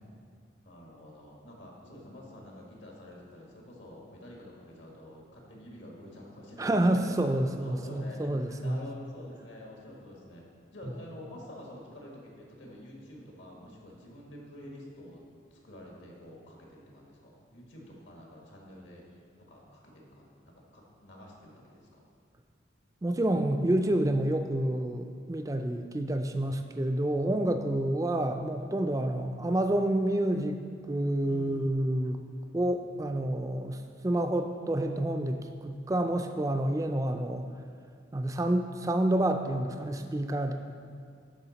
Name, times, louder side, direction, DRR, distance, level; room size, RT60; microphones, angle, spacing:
voice 1, 0.6-10.4 10.7-15.2 15.5-19.0 19.4-22.1 31.3-31.6, left 1 dB, 75° left, -2 dB, 1.6 m, -48 dB
voice 2, 6.6-8.8 23.0-30.6 30.9-32.2 32.5-37.5 38.1-40.7, right 1 dB, 15° right, 6 dB, 0.3 m, -28 dB
11.0 x 5.0 x 4.0 m, 2.2 s
head